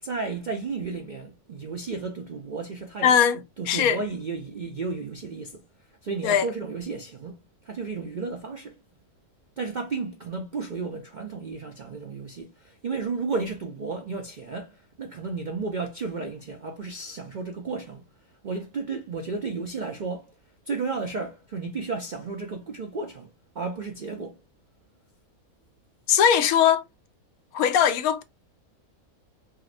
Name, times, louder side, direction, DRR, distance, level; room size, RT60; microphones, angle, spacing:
voice 1, 0.0-3.2 3.6-8.7 9.6-20.4 20.7-24.4, right 4 dB, 60° right, 0.4 m, -33 dB
voice 2, 3.0-3.4 3.7-4.0 6.2-6.4 26.1-26.8 27.5-28.2, left 8 dB, 80° left, 1.1 m, -20 dB
4.8 x 3.0 x 2.5 m
omnidirectional pair, 1.5 m